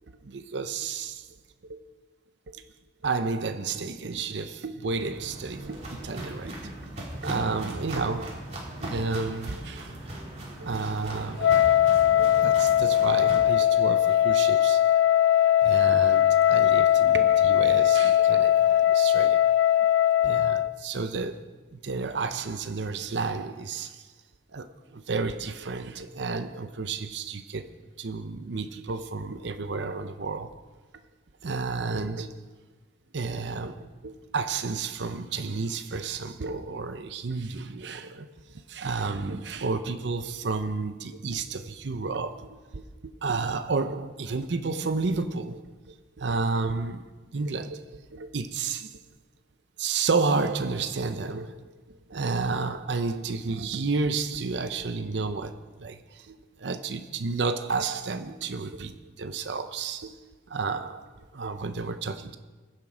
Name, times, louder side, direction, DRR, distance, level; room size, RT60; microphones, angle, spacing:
voice 1, 0.2-1.3 1.7-1.8 2.5-2.6 3.0-6.8 7.2-8.5 8.8-9.9 10.6-11.8 12.2-14.8 15.6-19.4 20.2-21.5 21.7-24.0 24.5-24.7 24.9-27.6 28.0-30.6 31.4-32.4 33.1-38.3 38.7-45.6 46.2-47.0 47.3-47.8 48.1-49.0 49.8-51.7 52.1-58.9 59.2-60.2 60.5-62.4, right 4 dB, 70° right, 0.6 m, -31 dB
Walk footsteps, 4.9-13.4, right 1 dB, 35° right, 3.1 m, -39 dB
Wind instrument woodwind instrument, 11.4-20.8, left 11 dB, 80° left, 0.3 m, -20 dB
21.5 x 7.5 x 5.0 m
head